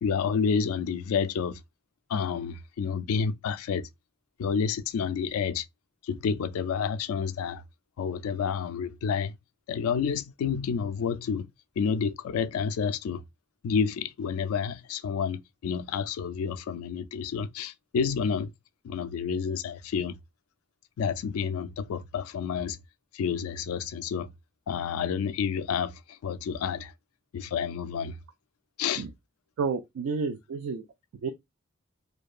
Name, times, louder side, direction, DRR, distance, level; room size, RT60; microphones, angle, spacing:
voice 1, 0.0-1.6 2.1-3.9 4.4-5.7 6.0-7.6 8.0-9.3 9.7-11.5 11.8-13.2 13.6-18.5 18.8-20.2 21.0-22.8 23.1-24.3 24.7-26.9 27.3-28.2 28.8-29.0, left 6 dB, 85° left, 0.3 m, -29 dB
voice 2, 29.6-30.8 31.2-31.3, right 5 dB, 70° right, 0.3 m, -30 dB
2.7 x 2.2 x 2.4 m
head